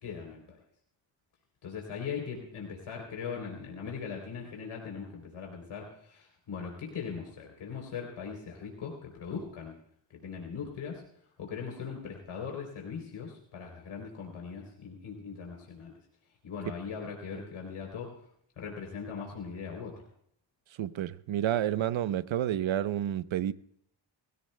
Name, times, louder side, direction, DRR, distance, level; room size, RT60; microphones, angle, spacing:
voice 1, 0.0-0.6 1.6-9.7 10.1-11.0 11.4-15.9 16.4-18.1 18.6-19.9, left 6 dB, 80° left, 3.5 m, -40 dB
voice 2, 20.8-23.5, right 11 dB, 70° right, 0.9 m, -30 dB
21.5 x 16.0 x 2.2 m
cardioid pair, 75°, 48 cm